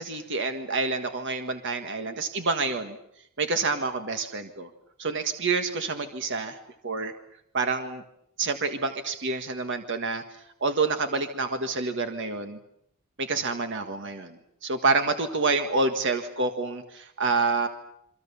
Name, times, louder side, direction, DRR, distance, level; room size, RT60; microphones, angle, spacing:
voice 1, 0.0-3.0 3.4-4.7 5.0-6.6 6.8-7.1 7.5-8.0 8.4-10.2 10.6-12.6 13.2-17.7, right 3 dB, 60° right, 6 dB, 1.7 m, -28 dB
28.0 x 24.5 x 7.1 m, 0.74 s
head